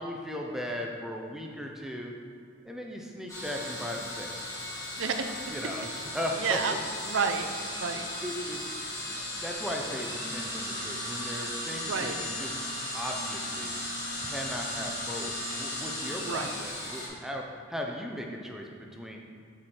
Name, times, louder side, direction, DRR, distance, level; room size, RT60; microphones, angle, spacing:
voice 1, 0.0-2.1 2.6-4.6 5.5-6.8 8.2-8.6 9.4-12.6 12.9-13.7 14.2-19.2, equal, ahead, 0 dB, 0.6 m, -37 dB
sound 1, 3.3-17.1, left 1 dB, 15° left, 1.8 m, -36 dB
voice 2, 5.0-5.3 6.4-6.8 7.0-8.1 11.7-12.2 16.2-16.5, right 5 dB, 70° right, 6 dB, 0.6 m, -30 dB
7.7 x 4.7 x 4.4 m, 2.4 s
head